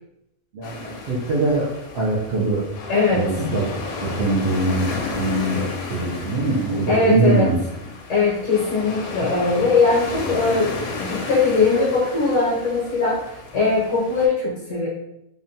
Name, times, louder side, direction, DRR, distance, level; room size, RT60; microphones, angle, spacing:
voice 1, 0.5-2.6 3.1-3.6 3.9-7.6, right 2 dB, 65° right, -5 dB, 0.6 m, -22 dB
sound 1, 0.6-14.3, left 3 dB, 90° left, 1.1 m, -33 dB
voice 2, 2.9-3.3 6.9-7.5 8.1-14.9, left 4 dB, 65° left, -5 dB, 1.0 m, -20 dB
2.8 x 2.2 x 2.6 m, 0.82 s
omnidirectional pair, 1.5 m